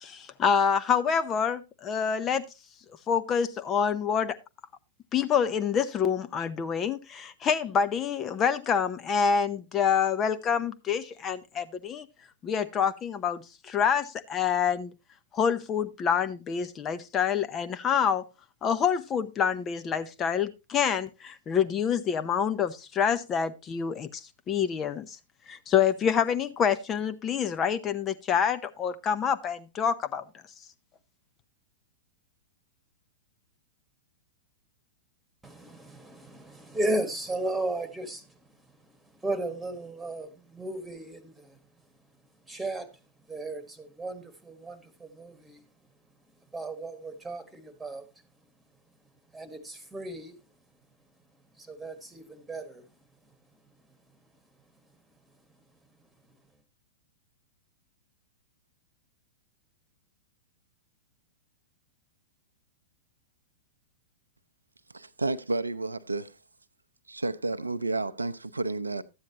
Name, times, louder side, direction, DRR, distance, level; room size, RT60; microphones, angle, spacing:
voice 1, 0.0-2.5 3.1-4.4 5.1-12.1 12.4-14.9 15.3-18.3 18.6-25.2 25.5-30.2, left 7 dB, 25° left, 0.6 m, -27 dB
voice 2, 35.4-38.3 39.2-41.6 42.5-42.9 43.3-45.6 46.5-48.1 49.3-50.4 51.6-52.8, right 1 dB, 5° right, 1.6 m, -35 dB
voice 3, 64.9-66.4 67.1-69.0, right 2 dB, 85° right, 0.6 m, -31 dB
12.5 x 8.8 x 2.9 m
figure-of-eight pair, 100°, 0 cm